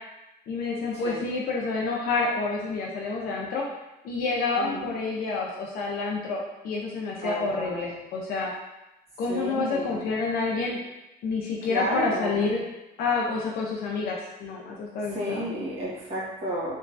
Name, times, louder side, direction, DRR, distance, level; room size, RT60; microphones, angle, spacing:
voice 1, 0.5-3.6 4.0-8.5 9.2-10.8 11.2-12.6 13.0-15.5, left 4 dB, 60° left, -2 dB, 0.4 m, -28 dB
voice 2, 4.6-4.9 7.2-7.9 9.3-10.0 11.7-12.5 15.1-16.7, equal, 35° right, -8 dB, 1.5 m, -32 dB
2.9 x 2.3 x 2.5 m, 0.95 s
cardioid pair, 110°, 17 cm